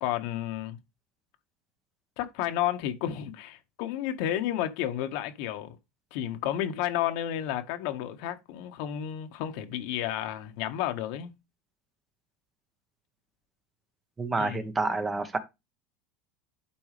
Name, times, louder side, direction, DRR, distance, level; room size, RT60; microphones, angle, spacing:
voice 1, 0.0-0.8 2.2-5.8 6.1-11.3 14.4-14.6, left 11 dB, 65° left, 1.6 m, -31 dB
voice 2, 14.2-15.4, right 3 dB, 15° right, 1.3 m, -28 dB
11.5 x 4.5 x 3.4 m
supercardioid pair, 140°, 0 cm